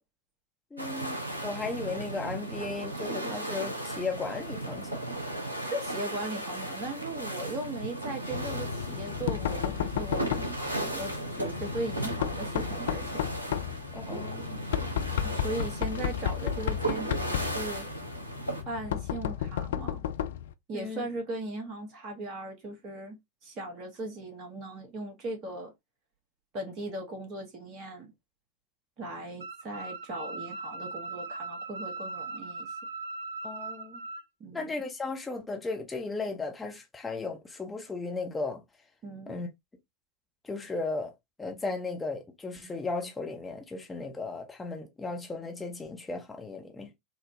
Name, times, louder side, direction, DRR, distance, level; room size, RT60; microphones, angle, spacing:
voice 1, 0.7-5.0 13.9-14.6 20.7-21.1 33.4-34.0 34.5-38.6 39.3-39.5 40.4-41.1 41.4-46.9, left 3 dB, 10° left, 0.8 m, -36 dB
sound 1, 0.8-18.6, right 1 dB, 80° right, 0.8 m, -36 dB
voice 2, 5.6-13.2 14.8-15.0 15.2-17.9 18.7-20.0 20.7-25.7 26.5-28.1 29.0-32.8 34.4-34.7 39.0-39.4, right 2 dB, 35° right, 1.2 m, -38 dB
Knock, 8.3-20.5, left 10 dB, 60° left, 0.3 m, -33 dB
sound 2, 29.4-34.2, right 3 dB, 60° right, 0.4 m, -39 dB
3.6 x 2.1 x 2.7 m
figure-of-eight pair, 90°, 0 cm